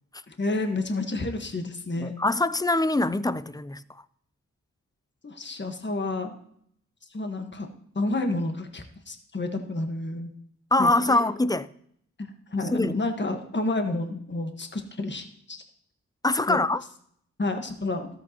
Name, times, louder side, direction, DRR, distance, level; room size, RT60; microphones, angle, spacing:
voice 1, 0.3-2.1 5.2-6.3 7.1-7.7 7.9-10.3 10.8-11.3 12.2-15.6 16.5-16.6 17.4-18.1, left 2 dB, 35° left, 1.4 m, -30 dB
voice 2, 2.0-3.8 10.7-11.7 12.7-13.0 16.2-16.8, left 2 dB, 10° left, 0.5 m, -23 dB
13.0 x 8.2 x 2.9 m
cardioid pair, 45°, 31 cm